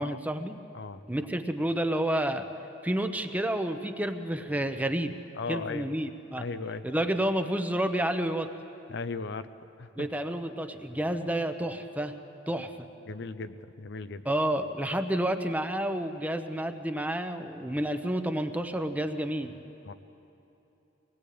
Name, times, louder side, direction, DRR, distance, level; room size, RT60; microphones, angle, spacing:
voice 1, 0.0-0.6 1.1-2.5 2.8-5.1 5.5-6.4 6.8-8.5 10.0-12.1 12.5-12.9 14.2-19.5, right 1 dB, 10° right, 7 dB, 0.9 m, -30 dB
voice 2, 5.4-5.9 6.4-6.9 8.9-9.5 9.8-10.1 13.1-14.2 19.8-19.9, left 4 dB, 60° left, 11 dB, 0.7 m, -37 dB
24.5 x 19.5 x 8.6 m, 2.9 s
head